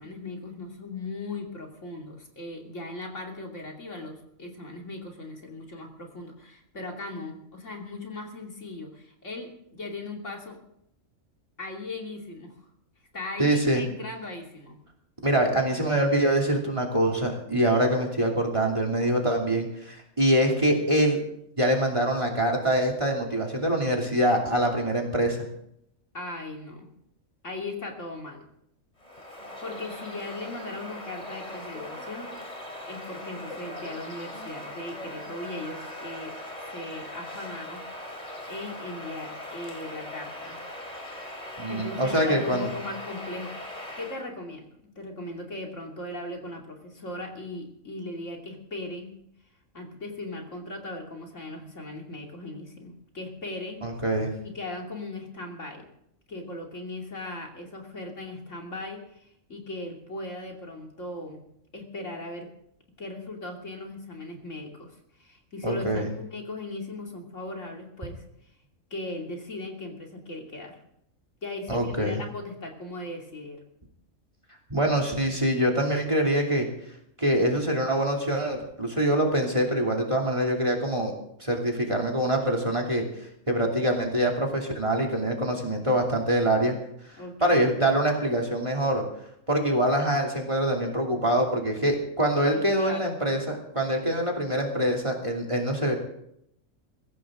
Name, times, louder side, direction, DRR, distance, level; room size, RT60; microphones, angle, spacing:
voice 1, 0.0-10.6 11.6-12.5 13.1-14.8 26.1-26.9 27.4-28.5 29.3-32.3 32.9-36.4 36.7-37.8 38.5-40.6 41.7-44.7 45.0-49.1 49.7-53.8 54.4-55.9 56.3-61.4 61.7-62.5 63.0-68.2 68.9-70.8 71.4-73.6 87.1-87.6 92.5-93.2, left 2 dB, 60° left, 1 dB, 3.2 m, -38 dB
voice 2, 13.4-13.8 15.2-21.2 21.6-25.4 41.6-42.7 53.8-54.3 65.6-66.1 71.7-72.2 74.7-76.7 77.2-81.1 81.4-83.0 83.5-86.7 87.4-89.0 89.5-95.9, right 1 dB, 20° right, -1 dB, 2.9 m, -24 dB
Bird vocalization bird call bird song, 29.0-44.3, left 1 dB, 25° left, 3.5 m, -40 dB
22.5 x 16.0 x 3.8 m, 0.75 s
omnidirectional pair, 1.4 m